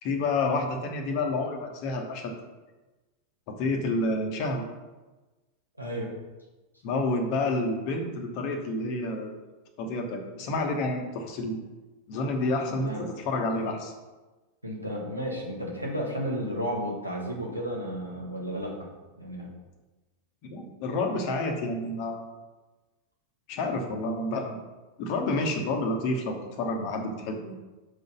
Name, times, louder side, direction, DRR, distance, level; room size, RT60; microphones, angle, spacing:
voice 1, 0.0-2.3 3.5-4.6 6.8-9.4 9.8-11.6 12.1-13.9 20.4-22.3 23.5-24.6 25.0-27.6, left 2 dB, 45° left, 3 dB, 1.2 m, -29 dB
voice 2, 5.8-6.1 12.8-13.1 14.6-18.9 19.2-19.5, equal, 90° right, -3 dB, 1.5 m, -33 dB
6.2 x 4.0 x 5.4 m, 1.2 s
figure-of-eight pair, 90°, 0 cm